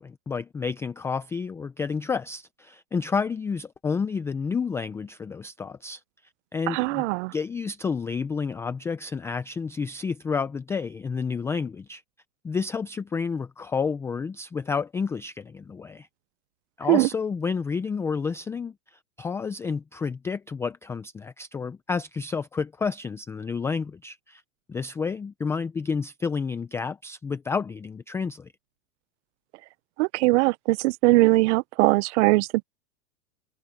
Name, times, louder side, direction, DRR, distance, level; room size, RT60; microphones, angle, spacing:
voice 1, 0.0-6.0 6.5-7.1 7.3-12.0 12.4-16.1 16.8-24.4 24.7-28.5, left 5 dB, 5° left, 0.4 m, -30 dB
voice 2, 6.7-7.3 16.9-17.1 30.0-32.6, right 22 dB, 50° right, 0.7 m, -21 dB
hypercardioid pair, 125°, 45 cm